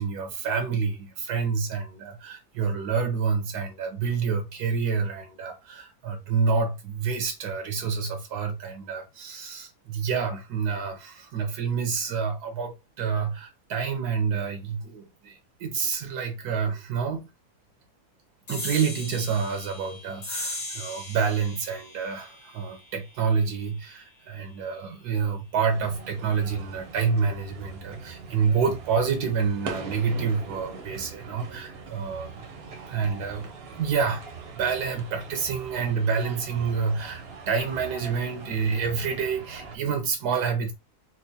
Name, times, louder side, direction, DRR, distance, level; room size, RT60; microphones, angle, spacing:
voice 1, 0.0-17.3 18.5-32.5 32.9-34.3 34.6-40.7, right 5 dB, 80° right, 1.2 m, -28 dB
sound 1, 18.5-25.3, left 2 dB, 75° left, 2.1 m, -39 dB
sound 2, 25.7-39.8, right 4 dB, 50° right, 0.8 m, -42 dB
4.4 x 2.1 x 2.7 m
omnidirectional pair, 1.7 m